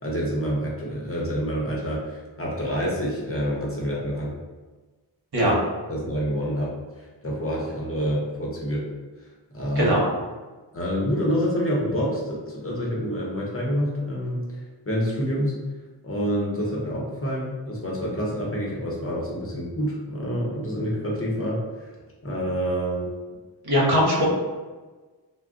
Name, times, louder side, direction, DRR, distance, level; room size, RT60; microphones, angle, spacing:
voice 1, 0.0-4.3 5.4-5.5 5.9-6.7 7.2-8.9 9.5-9.9 10.7-14.6 14.9-15.6 16.0-21.9 22.2-23.1, equal, 30° left, -4 dB, 0.9 m, -27 dB
voice 2, 23.6-24.2, equal, 60° right, -5 dB, 1.1 m, -20 dB
2.3 x 2.2 x 3.8 m, 1.3 s
cardioid pair, 50°, 44 cm